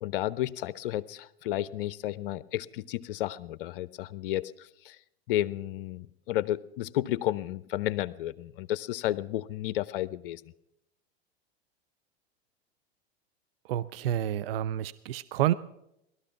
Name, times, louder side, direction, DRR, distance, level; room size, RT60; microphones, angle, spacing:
voice 1, 0.0-5.0 5.3-10.4, left 14 dB, 55° left, 17 dB, 0.7 m, -32 dB
voice 2, 13.7-15.5, right 12 dB, 60° right, 16 dB, 0.5 m, -29 dB
18.5 x 13.0 x 5.9 m, 0.82 s
figure-of-eight pair, 90°, 32 cm